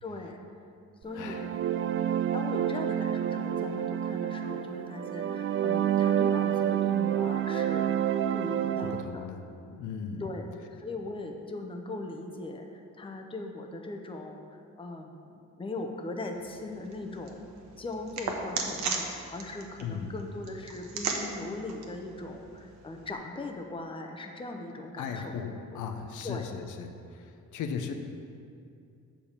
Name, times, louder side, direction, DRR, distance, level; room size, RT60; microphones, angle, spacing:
voice 1, 0.0-0.4 1.0-1.5 2.3-8.0 8.3-9.3 10.2-10.5 10.8-14.4 14.8-17.5 17.8-25.3 26.2-26.5, left 2 dB, 15° left, 3 dB, 0.8 m, -39 dB
voice 2, 1.1-1.5 8.8-9.4 9.7-10.3 19.8-20.1 25.0-27.9, left 6 dB, 80° left, 6 dB, 0.8 m, -37 dB
sound 1, 1.1-9.0, right 9 dB, 45° right, 0.4 m, -28 dB
sound 2, 16.3-23.1, right 4 dB, 65° right, 1.1 m, -38 dB
7.0 x 5.1 x 6.6 m, 2.4 s
cardioid pair, 90°, 30 cm